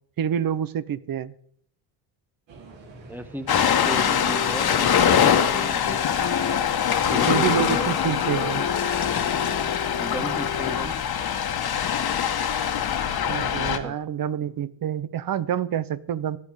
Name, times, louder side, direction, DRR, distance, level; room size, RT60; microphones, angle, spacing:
voice 1, 0.2-1.4 7.3-8.6 13.3-16.4, right 9 dB, 50° right, 17 dB, 0.9 m, -27 dB
sound 1, 2.5-9.6, right 3 dB, 70° right, 5.5 m, -46 dB
voice 2, 3.1-3.5 3.9-6.0 6.9-7.9 10.0-11.0 13.5-14.0, equal, 5° right, 9 dB, 1.8 m, -35 dB
Ocean, 3.5-13.8, left 8 dB, 55° left, 1.8 m, -23 dB
sound 2, 3.5-4.7 5.0-10.9, left 7 dB, 40° left, 1.1 m, -33 dB
15.0 x 10.5 x 5.1 m, 0.63 s
cardioid pair, 80°, 46 cm